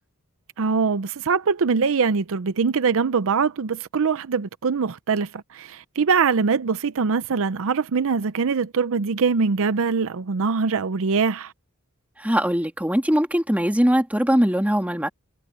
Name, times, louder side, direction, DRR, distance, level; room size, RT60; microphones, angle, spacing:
voice 1, 0.6-11.5, right 5 dB, 65° right, 0.6 m, -23 dB
voice 2, 12.2-15.1, equal, 5° right, 2.8 m, -21 dB
head